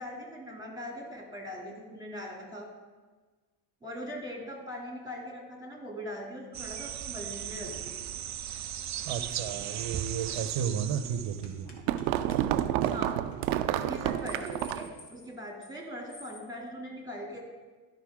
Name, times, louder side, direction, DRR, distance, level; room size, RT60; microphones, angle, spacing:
voice 1, 0.0-2.7 3.8-8.0 12.9-13.2 13.8-17.4, equal, 10° right, -1 dB, 2.8 m, -41 dB
sound 1, 6.5-11.6, right 10 dB, 35° right, 0.5 m, -37 dB
voice 2, 9.0-11.7, right 8 dB, 60° right, 8 dB, 0.9 m, -33 dB
sound 2, 10.0-10.2 10.5-10.8 11.4-12.0 12.3-12.4 12.8-12.9 13.3-13.4 13.9-15.8 16.1-16.5, left 4 dB, 55° left, 2.0 m, -52 dB
sound 3, 11.2-15.0, right 12 dB, 90° right, 0.6 m, -29 dB
13.0 x 5.6 x 3.7 m, 1.3 s
supercardioid pair, 75°, 48 cm